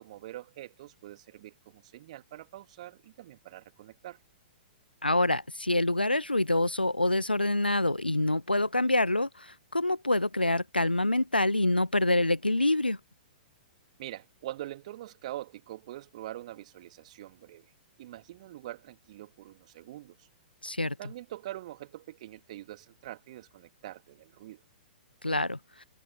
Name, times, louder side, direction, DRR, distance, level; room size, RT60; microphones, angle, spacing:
voice 1, 0.0-4.2 14.0-17.7 18.0-20.3 21.0-24.6, right 14 dB, 45° right, 2.3 m, -44 dB
voice 2, 5.0-13.0 20.6-21.0 25.2-25.6, left 2 dB, 85° left, 0.9 m, -26 dB
figure-of-eight pair, 110°, 5 cm